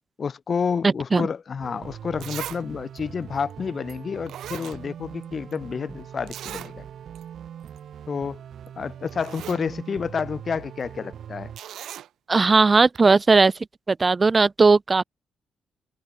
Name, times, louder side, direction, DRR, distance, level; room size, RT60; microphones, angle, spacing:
voice 1, 0.2-6.9 8.1-8.4 8.8-11.5, left 6 dB, 35° left, 0.5 m, -29 dB
voice 2, 0.8-1.3 12.3-13.5 13.9-15.0, right 4 dB, 20° right, 0.4 m, -18 dB
sound 1, 1.6-11.6, right 9 dB, 60° right, 1.0 m, -41 dB
Zipper (clothing), 1.7-1.8 2.2-2.6 3.0-3.1 3.9-4.0 4.3-5.2 5.5-5.6 6.3-6.7 7.2-7.3 7.6-7.8 8.7-8.8 9.1-9.6 11.6-12.1 13.0-13.1, right 11 dB, 85° right, 0.6 m, -38 dB
wide cardioid pair, 170°, 0 cm